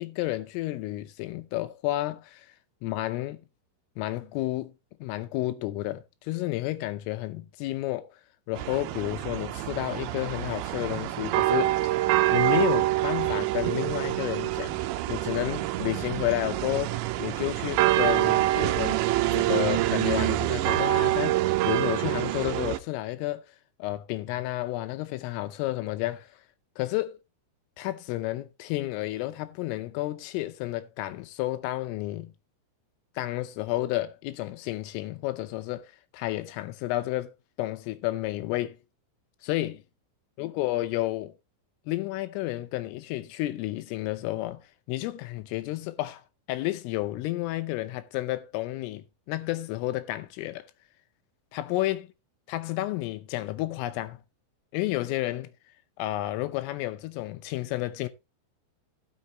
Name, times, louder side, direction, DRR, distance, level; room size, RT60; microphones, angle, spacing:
voice 1, 0.0-2.5 2.8-3.4 4.0-4.7 5.0-8.1 8.5-11.9 12.3-14.8 15.1-19.0 19.3-23.4 23.8-26.3 26.8-27.2 27.8-32.3 33.2-38.8 39.4-39.8 40.4-41.3 41.9-44.6 44.9-46.2 46.5-50.7 51.5-52.1 52.5-54.2 54.7-55.5 56.0-58.1, left 17 dB, 80° left, 3.3 m, -31 dB
sound 1, 8.6-22.8, right 16 dB, 85° right, 2.6 m, -26 dB
16.5 x 6.4 x 2.9 m
omnidirectional pair, 6.0 m